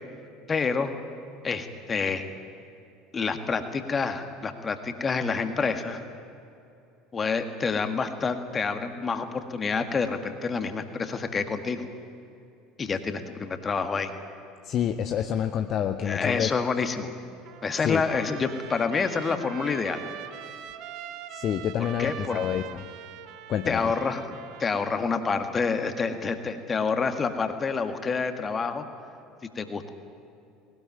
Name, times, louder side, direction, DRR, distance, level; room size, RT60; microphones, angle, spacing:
voice 1, 0.5-0.9 1.4-2.2 3.1-6.0 7.1-11.9 12.8-14.1 16.0-17.1 17.6-20.0 22.0-22.4 23.7-28.8 29.6-29.9, left 5 dB, 25° left, 7 dB, 1.9 m, -28 dB
voice 2, 14.6-16.5 17.8-18.0 21.3-22.9 23.5-23.8, left 9 dB, 40° left, 8 dB, 0.9 m, -28 dB
Trumpet, 17.4-25.1, right 10 dB, 50° right, 1.2 m, -43 dB
20.5 x 18.5 x 9.5 m, 2.7 s
figure-of-eight pair, 65°, 0 cm